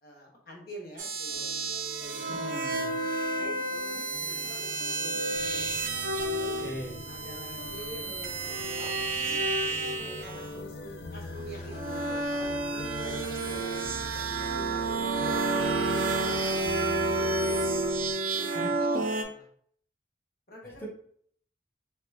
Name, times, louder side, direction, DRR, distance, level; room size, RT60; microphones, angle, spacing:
voice 1, 0.0-1.5 2.0-2.7 3.3-5.7 6.2-6.6 7.0-9.4 10.0-13.9 14.3-15.4 15.8-17.6 18.3-19.5 20.5-20.9, equal, 55° left, -2 dB, 1.1 m, -46 dB
sound 1, 1.0-10.5 11.3-19.2, right 3 dB, 50° right, 0.4 m, -30 dB
sound 2, 1.3-17.9, left 1 dB, 75° left, 0.4 m, -43 dB
voice 2, 2.3-2.9 6.6-7.0 18.5-18.7 20.8-20.9, equal, 10° left, -2 dB, 0.7 m, -39 dB
sound 3, 5.3-18.1, left 1 dB, 90° left, 1.2 m, -48 dB
2.9 x 2.4 x 3.4 m, 0.62 s
head